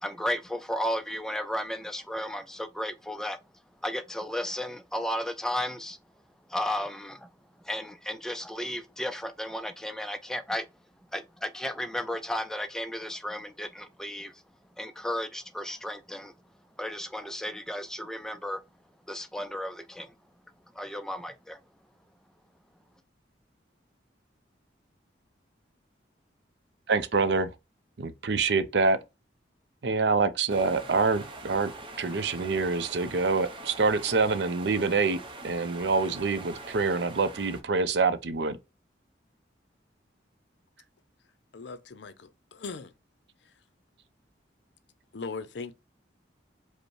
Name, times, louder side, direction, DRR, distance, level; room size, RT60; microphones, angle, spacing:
voice 1, 0.0-3.4 3.8-6.0 6.5-7.3 7.6-10.7 11.1-14.3 14.8-16.3 16.8-18.6 19.1-20.1 20.8-21.6, left 1 dB, 5° left, 0.3 m, -34 dB
voice 2, 26.9-27.5 28.0-29.0 29.8-31.7 32.0-35.2 35.4-38.6, right 4 dB, 65° right, 0.5 m, -26 dB
sound 1, 30.5-37.6, right 2 dB, 30° right, 0.7 m, -43 dB
voice 3, 41.5-42.9 45.1-45.7, left 4 dB, 70° left, 0.5 m, -39 dB
5.1 x 2.1 x 4.6 m
head